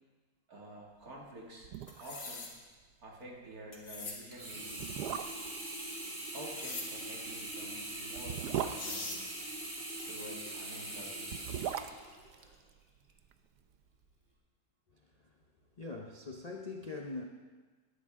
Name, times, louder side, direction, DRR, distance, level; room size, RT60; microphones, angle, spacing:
voice 1, 0.5-1.7 2.0-2.5 3.0-5.1 6.2-9.3 10.0-11.5, right 1 dB, 60° right, -2 dB, 2.8 m, -49 dB
sound 1, 1.3-1.4 1.6-2.3 2.6-2.7 3.1-3.3 4.0-4.1 4.7-5.6 7.1-9.8 11.1-13.3 13.6-13.7, right 9 dB, 75° right, 1.2 m, -39 dB
sound 2, 1.9-2.5 3.7-4.2 6.5-6.9 8.4-8.5 8.7-9.2, left 3 dB, 75° left, 2.4 m, -41 dB
Sink (filling or washing), 4.3-12.5 13.1-13.2, right 1 dB, 35° right, 2.6 m, -42 dB
voice 2, 14.9-15.4 15.8-17.2, left 3 dB, 40° left, 2 dB, 0.6 m, -43 dB
19.5 x 11.0 x 3.7 m, 1.4 s
omnidirectional pair, 1.8 m